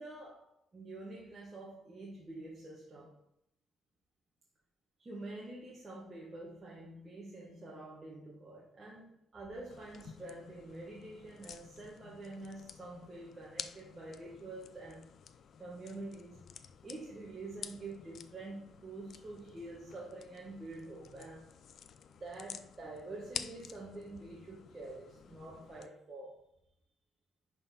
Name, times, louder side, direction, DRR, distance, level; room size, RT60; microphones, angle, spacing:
voice 1, 0.0-3.2 5.0-15.0 15.6-21.5 22.2-26.5, right 2 dB, 20° right, 1.1 m, -47 dB
sound 1, 9.7-25.9, left 7 dB, 50° left, 0.4 m, -50 dB
10.5 x 3.8 x 4.1 m
cardioid pair, 165°, 0 cm